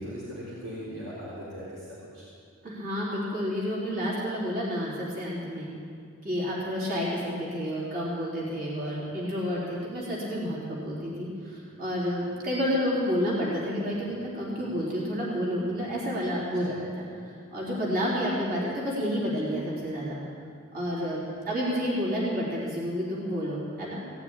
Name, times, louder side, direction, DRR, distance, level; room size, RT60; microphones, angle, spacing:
voice 1, 0.0-2.2 16.5-16.8, equal, 90° right, -8 dB, 4.1 m, -39 dB
voice 2, 2.6-5.7 6.2-17.1 17.5-20.2 20.7-24.0, equal, 45° right, -7 dB, 4.0 m, -30 dB
17.5 x 7.2 x 9.9 m, 2.3 s
head